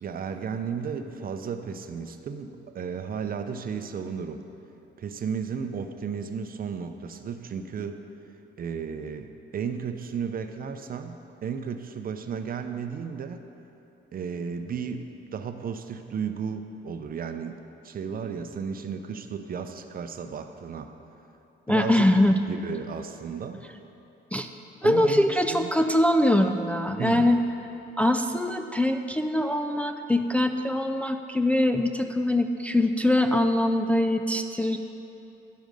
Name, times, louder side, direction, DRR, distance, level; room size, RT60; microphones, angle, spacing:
voice 1, 0.0-4.4 5.0-8.0 8.6-11.2 11.4-13.4 14.1-17.6 17.8-20.9 21.7-22.1 22.5-23.6 24.8-25.8 27.0-27.3, right 6 dB, 45° right, 7 dB, 0.6 m, -34 dB
voice 2, 21.7-22.3 24.3-24.5 24.8-27.4 28.0-34.8, left 1 dB, 5° left, 5 dB, 0.3 m, -23 dB
10.5 x 6.2 x 5.3 m, 2.9 s
cardioid pair, 90°, 20 cm